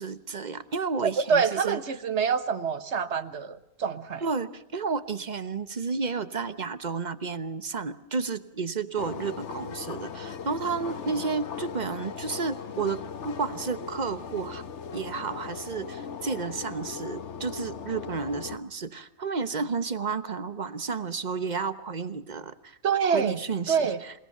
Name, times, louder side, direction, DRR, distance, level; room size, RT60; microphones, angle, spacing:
voice 1, 0.0-1.8 4.2-14.6 14.9-22.8 23.0-24.1, right 4 dB, 35° right, 12 dB, 1.2 m, -32 dB
voice 2, 1.0-4.2 22.8-23.4 23.7-24.0, right 6 dB, 60° right, 12 dB, 1.6 m, -26 dB
sound 1, 9.0-18.6, left 6 dB, 65° left, 1.3 m, -38 dB
28.0 x 19.0 x 6.7 m, 0.81 s
omnidirectional pair, 1.3 m